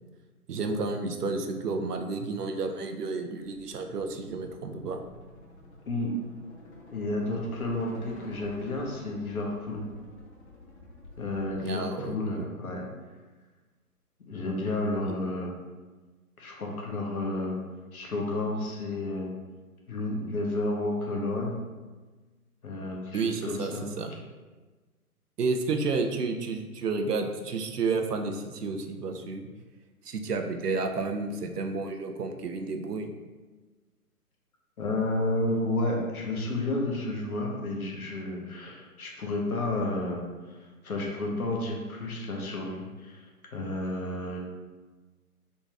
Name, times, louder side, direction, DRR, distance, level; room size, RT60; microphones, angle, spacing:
voice 1, 0.5-5.0 11.6-12.4 23.1-23.7 24.0-24.1 25.4-29.5 30.1-33.1, right 4 dB, 85° right, 5 dB, 0.6 m, -31 dB
sound 1, 3.4-11.6, left 1 dB, 45° left, 0.8 m, -50 dB
voice 2, 5.9-6.2 6.9-9.8 11.2-12.8 14.3-15.5 16.4-17.6 17.9-19.3 19.9-21.6 22.6-23.9 34.8-40.6 40.8-43.2 43.5-44.4, left 2 dB, 70° left, -1 dB, 1.0 m, -31 dB
3.9 x 2.4 x 3.2 m, 1.3 s
figure-of-eight pair, 150°, 46 cm